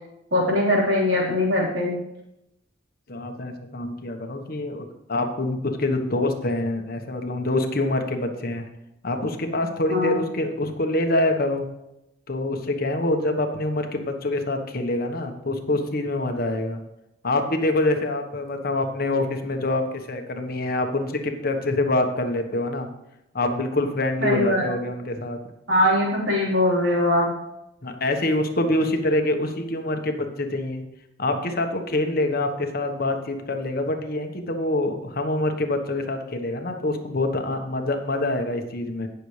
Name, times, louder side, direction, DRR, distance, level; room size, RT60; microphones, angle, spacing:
voice 1, 0.3-2.0 9.9-10.1 24.2-24.7 25.7-27.3, left 1 dB, 85° right, -4 dB, 4.0 m, -21 dB
voice 2, 3.1-8.6 9.0-11.7 12.3-16.8 17.2-19.8 20.1-22.9 23.3-25.4 27.8-30.8 31.2-39.1, left 2 dB, 55° left, 5 dB, 1.2 m, -25 dB
18.0 x 6.9 x 3.3 m, 0.87 s
head